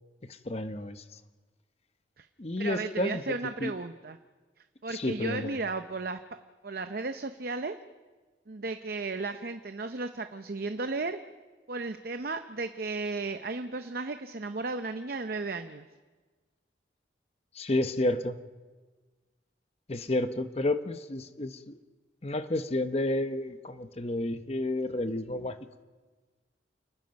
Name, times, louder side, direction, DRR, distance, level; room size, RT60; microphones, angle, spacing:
voice 1, 0.5-1.0 2.4-3.4 3.6-3.7 4.9-5.6 17.6-18.4 19.9-21.8 22.2-25.6, left 1 dB, 35° left, 10 dB, 0.8 m, -30 dB
voice 2, 2.6-4.2 4.8-6.2 6.6-7.8 8.5-11.2 11.7-15.9, right 3 dB, 50° right, 8 dB, 0.7 m, -34 dB
29.0 x 19.5 x 5.3 m, 1.3 s
head